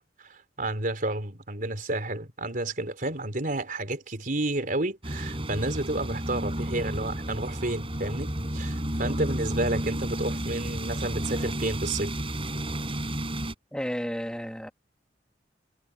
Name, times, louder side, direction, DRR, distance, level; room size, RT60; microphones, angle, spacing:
voice 1, 0.0-12.1, right 2 dB, 50° right, 4.2 m, -31 dB
sound 1, 5.0-13.5, right 1 dB, 30° right, 6.7 m, -32 dB
voice 2, 13.7-14.7, equal, 5° left, 2.6 m, -32 dB
head